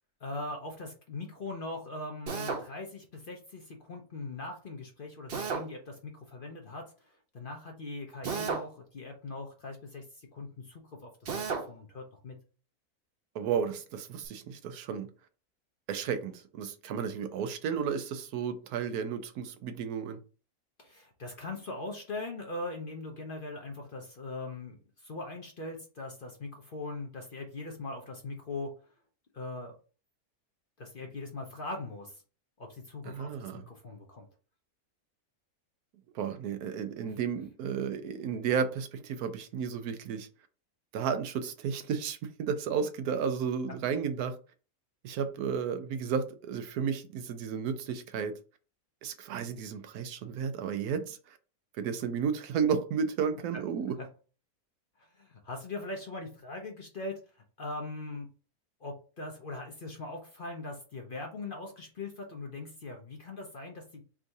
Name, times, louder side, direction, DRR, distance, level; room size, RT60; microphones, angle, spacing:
voice 1, 0.2-12.4 20.8-28.7 29.3-29.7 30.8-32.2 32.6-34.3 37.1-37.2 54.0-54.1 55.0-58.3 58.8-64.0, left 2 dB, 45° left, 0.7 m, -41 dB
Drill, 2.3-2.7 5.3-5.7 8.2-8.7 11.2-11.7, right 5 dB, 50° right, 0.8 m, -33 dB
voice 2, 13.3-15.1 15.9-20.2 33.0-33.6 36.1-40.3 40.9-44.3 45.0-48.3 49.0-51.4 51.8-54.0, right 7 dB, 85° right, 1.1 m, -33 dB
3.6 x 2.6 x 4.5 m
omnidirectional pair, 1.6 m